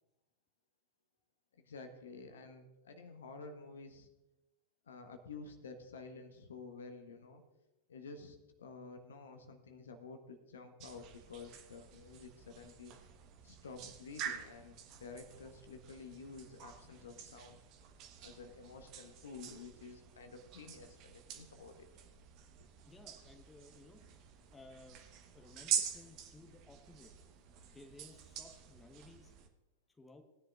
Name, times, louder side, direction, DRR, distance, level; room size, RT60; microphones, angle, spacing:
voice 1, 1.6-4.1 4.9-7.4 7.9-13.0 13.4-17.6 18.2-21.9, left 4 dB, 65° left, 6 dB, 1.2 m, -51 dB
sound 1, 10.8-29.5, right 8 dB, 40° right, 1.2 m, -46 dB
voice 2, 22.9-24.0 24.5-25.1 25.3-27.1 27.6-29.3 29.9-30.2, left 2 dB, 10° left, 4 dB, 1.3 m, -58 dB
19.0 x 10.5 x 2.5 m, 0.99 s
figure-of-eight pair, 90°, 0 cm